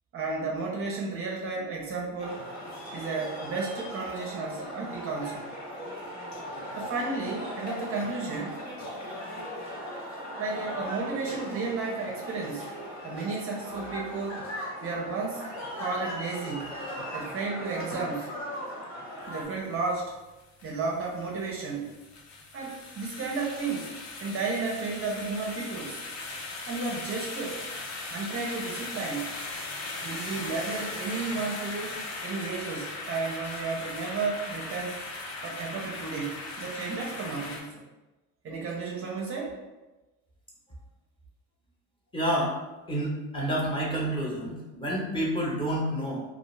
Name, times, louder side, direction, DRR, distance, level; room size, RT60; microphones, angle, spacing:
voice 1, 0.1-2.4 2.9-5.5 6.7-8.6 10.4-12.7 13.0-14.5 14.8-15.5 15.8-16.7 17.1-18.3 19.3-20.1 20.6-21.9 22.5-23.9 24.2-26.0 26.7-27.6 28.1-29.3 30.0-35.0 35.4-37.8 38.4-39.5, right 4 dB, 40° right, -2 dB, 0.5 m, -33 dB
sound 1, 2.2-19.4, equal, 70° left, 1.3 m, -38 dB
sound 2, 19.2-37.6, left 3 dB, 55° left, 0.7 m, -38 dB
voice 2, 42.1-42.6 42.9-46.2, right 1 dB, 15° left, -4 dB, 0.8 m, -29 dB
2.4 x 2.3 x 3.1 m, 1.1 s
cardioid pair, 125°, 34 cm